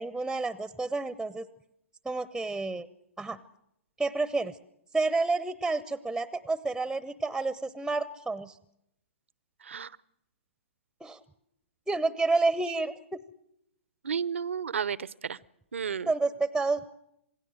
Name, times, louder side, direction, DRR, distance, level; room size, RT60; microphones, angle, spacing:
voice 1, 0.0-1.5 2.0-2.9 3.2-3.4 4.0-4.6 4.9-8.6 11.0-11.2 11.9-13.2 16.1-16.9, right 3 dB, ahead, 17 dB, 0.7 m, -29 dB
voice 2, 9.6-9.9 14.0-15.4 15.7-16.1, right 7 dB, 70° right, 21 dB, 0.8 m, -32 dB
27.0 x 19.0 x 6.4 m, 0.79 s
figure-of-eight pair, 120°, 7 cm